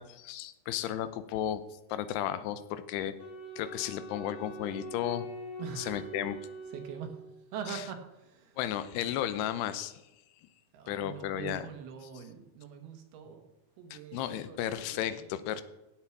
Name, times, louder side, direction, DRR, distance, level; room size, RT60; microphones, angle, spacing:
voice 1, 0.0-1.6 1.9-3.1 3.6-5.3 5.8-6.4 7.7-7.8 8.6-10.0 10.9-11.7 12.2-12.3 13.9-15.6, left 11 dB, 80° left, 13 dB, 2.8 m, -34 dB
Wind instrument woodwind instrument, 3.2-7.6, right 1 dB, 45° left, 2.8 m, -44 dB
voice 2, 5.6-6.1 6.7-7.1 7.5-8.6 10.7-13.5 13.8-15.4, right 7 dB, 75° right, 5 dB, 3.2 m, -43 dB
16.5 x 7.9 x 4.7 m, 0.96 s
omnidirectional pair, 4.7 m